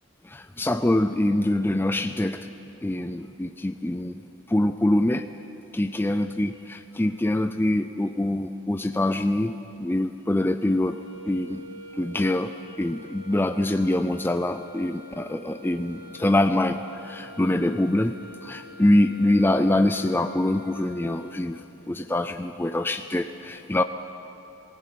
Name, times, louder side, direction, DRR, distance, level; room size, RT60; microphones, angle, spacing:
voice 1, 0.2-2.5 2.8-4.1 4.5-5.3 5.7-11.0 11.2-11.6 12.0-12.5 12.8-18.2 18.4-21.6 21.9-23.8, left 1 dB, 10° left, 8 dB, 0.4 m, -24 dB
sound 1, 10.8-21.7, left 1 dB, 90° right, 5.1 m, -46 dB
19.5 x 16.0 x 9.2 m, 3.0 s
head